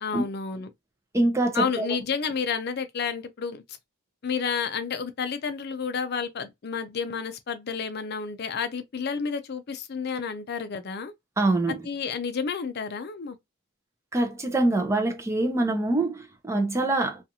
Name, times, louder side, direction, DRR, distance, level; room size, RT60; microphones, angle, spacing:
voice 1, 0.0-0.7 1.5-3.6 4.2-11.1 11.7-13.4, left 5 dB, 50° left, 0.5 m, -30 dB
voice 2, 1.1-1.8 11.4-11.8 14.1-17.2, right 2 dB, 15° right, 0.5 m, -24 dB
2.5 x 2.4 x 2.7 m
head